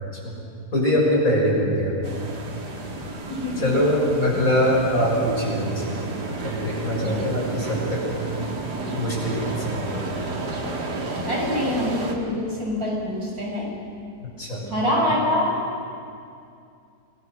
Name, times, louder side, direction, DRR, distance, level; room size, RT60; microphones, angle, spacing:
voice 1, 0.7-2.2 3.6-5.8 6.4-8.1 8.4-8.5 8.9-10.1 14.2-14.6, equal, 55° left, -4 dB, 6.9 m, -23 dB
sound 1, 2.0-12.1, right 2 dB, 85° right, 2.8 m, -31 dB
voice 2, 3.3-3.8 7.0-7.3 11.3-13.8 14.7-15.6, left 1 dB, 60° right, -3 dB, 6.8 m, -25 dB
29.0 x 21.0 x 6.5 m, 2.4 s
omnidirectional pair, 1.7 m